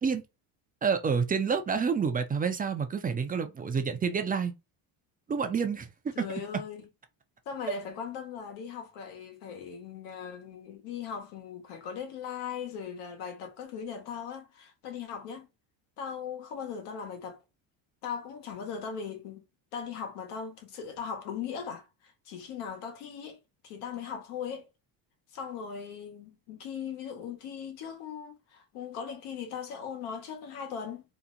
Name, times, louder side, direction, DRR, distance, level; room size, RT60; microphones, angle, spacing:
voice 1, 0.8-4.5 5.3-5.9, right 6 dB, 20° right, 0.3 m, -28 dB
voice 2, 6.1-6.8 7.5-15.5 16.0-17.4 18.0-19.4 19.7-24.7 25.3-31.0, left 7 dB, 85° left, 1.1 m, -39 dB
2.8 x 2.1 x 3.7 m
cardioid pair, 110°, 50 cm